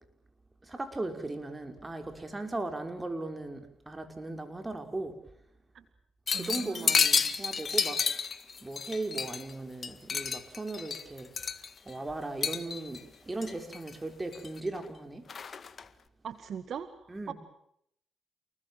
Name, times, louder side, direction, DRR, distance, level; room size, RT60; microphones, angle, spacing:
voice 1, 0.6-5.2 6.3-8.0 8.6-11.3 11.8-15.3 17.1-17.3, right 2 dB, 20° right, 7 dB, 5.9 m, -37 dB
sound 1, 6.3-9.5 9.8-11.9 12.4-13.0 13.4-13.9 14.3-14.8 15.3-15.8, left 6 dB, 45° left, 1.9 m, -30 dB
voice 2, 6.3-6.9 16.2-16.9 17.3-17.4, right 8 dB, 65° right, 11 dB, 1.9 m, -39 dB
29.5 x 20.5 x 7.5 m, 0.72 s
cardioid pair, 70°, 0 cm